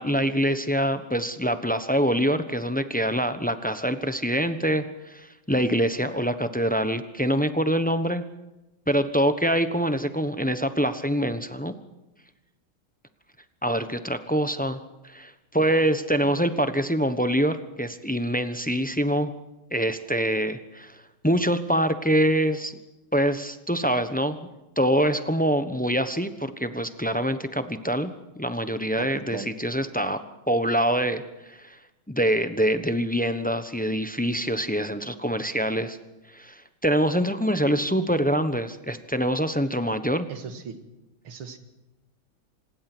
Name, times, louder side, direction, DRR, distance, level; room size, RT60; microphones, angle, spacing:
voice 1, 0.0-8.2 8.9-11.7 13.6-19.3 19.7-22.8 23.1-24.4 24.8-30.2 30.5-31.8 32.1-36.0 36.3-40.3, equal, 10° left, 10 dB, 0.5 m, -25 dB
voice 2, 28.9-29.6 40.3-40.8 41.2-41.6, right 6 dB, 80° right, 8 dB, 2.8 m, -38 dB
26.0 x 20.0 x 6.2 m, 1.0 s
omnidirectional pair, 2.3 m